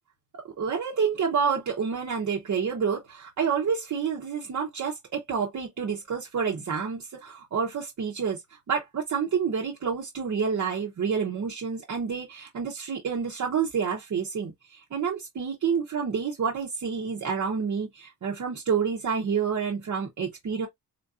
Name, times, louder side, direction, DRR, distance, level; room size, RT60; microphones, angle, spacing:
voice 1, 0.4-8.4 8.7-20.7, right 6 dB, 55° right, 0.8 m, -28 dB
3.7 x 2.4 x 2.5 m
wide cardioid pair, 175°, 34 cm